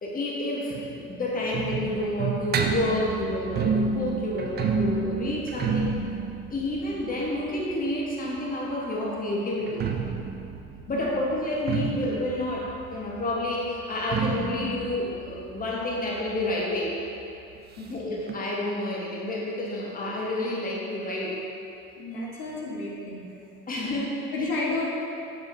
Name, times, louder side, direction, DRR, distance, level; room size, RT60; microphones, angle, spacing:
voice 1, 0.0-5.9 6.5-9.8 10.9-17.0 17.9-21.4 23.7-24.5, left 1 dB, 20° left, -3 dB, 1.2 m, -29 dB
sound 1, 0.7-8.4 9.5-16.9 17.2-17.3 17.5-17.6 18.3-18.4, right 5 dB, 25° right, 0.5 m, -30 dB
voice 2, 22.0-23.2 24.3-24.8, left 3 dB, 65° left, -5 dB, 1.4 m, -31 dB
7.6 x 6.9 x 2.7 m, 2.7 s
figure-of-eight pair, 60°, 45 cm